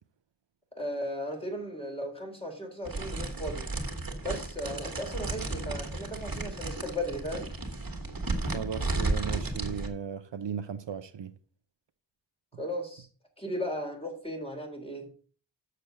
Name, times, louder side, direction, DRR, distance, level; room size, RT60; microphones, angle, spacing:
voice 1, 0.7-3.7 4.2-7.5 12.6-13.1 13.4-15.1, equal, 15° left, 3.4 m, -36 dB
sound 1, 2.8-9.9, right 2 dB, 55° right, 1.8 m, -33 dB
voice 2, 8.4-11.3, right 7 dB, 85° right, 0.7 m, -36 dB
6.8 x 6.6 x 6.7 m
wide cardioid pair, 50°, 42 cm